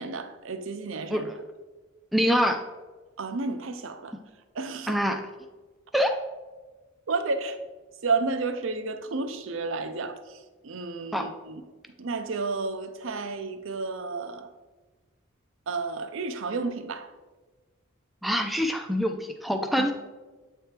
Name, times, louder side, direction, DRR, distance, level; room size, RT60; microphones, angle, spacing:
voice 1, 0.0-1.3 3.2-4.2 4.5-5.0 7.1-7.6 8.0-10.2 10.6-11.6 12.0-14.5 15.7-17.1 19.8-19.9, right 4 dB, 65° right, 0.6 m, -31 dB
voice 2, 2.1-2.6 4.9-5.2 5.9-6.1 11.1-11.3 18.2-19.9, equal, ahead, 0.4 m, -25 dB
8.3 x 3.4 x 4.4 m
head